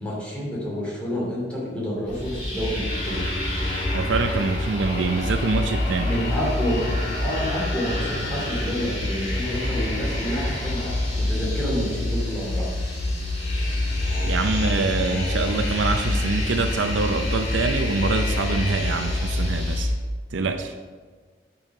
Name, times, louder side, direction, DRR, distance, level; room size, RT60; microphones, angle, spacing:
voice 1, 0.0-3.3 6.0-6.9 7.2-12.7, equal, 5° left, -6 dB, 2.8 m, -29 dB
sound 1, 2.1-19.8, left 1 dB, 35° left, 2.1 m, -26 dB
voice 2, 3.9-6.1 14.2-19.9 20.3-20.7, right 3 dB, 80° right, 6 dB, 0.5 m, -25 dB
9.0 x 5.6 x 5.3 m, 1.5 s
head